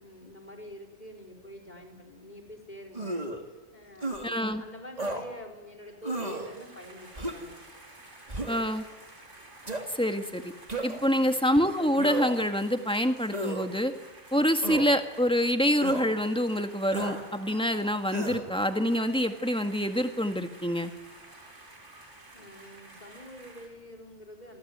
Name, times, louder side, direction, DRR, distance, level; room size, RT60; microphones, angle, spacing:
voice 1, 0.0-7.6 11.0-11.4 22.3-24.6, equal, 35° left, 2 dB, 5.0 m, -47 dB
sound 1, 2.9-3.4 4.0-4.3 5.0-5.2 6.0-6.5 7.2-7.5 8.3-8.7 9.7-9.8 10.7-11.1 12.0-12.5 13.3-13.7 14.6-14.9 15.8-16.1 16.9-17.2 18.1-18.5, right 2 dB, 30° right, 3.3 m, -33 dB
voice 2, 4.2-4.6 8.5-8.8 9.9-10.5 10.8-13.9 14.3-20.9, equal, 5° left, 6 dB, 1.8 m, -26 dB
sound 2, 5.8-23.7, right 2 dB, 65° right, 7.2 m, -51 dB
28.0 x 20.0 x 9.5 m, 1.3 s
omnidirectional pair, 1.4 m